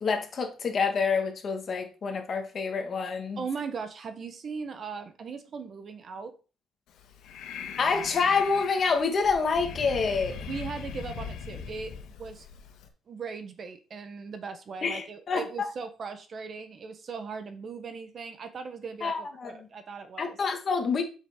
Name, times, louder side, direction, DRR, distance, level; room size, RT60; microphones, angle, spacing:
voice 1, 0.0-3.4 7.8-10.4 14.8-15.4 19.0-19.7 20.2-21.0, left 5 dB, 35° left, 1.6 m, -27 dB
voice 2, 3.4-6.3 10.5-12.5 13.1-20.4, right 5 dB, 35° right, 0.9 m, -38 dB
Breathing, 6.9-12.9, left 7 dB, 85° left, 1.6 m, -40 dB
8.0 x 6.6 x 3.7 m
cardioid pair, 160°, 0 cm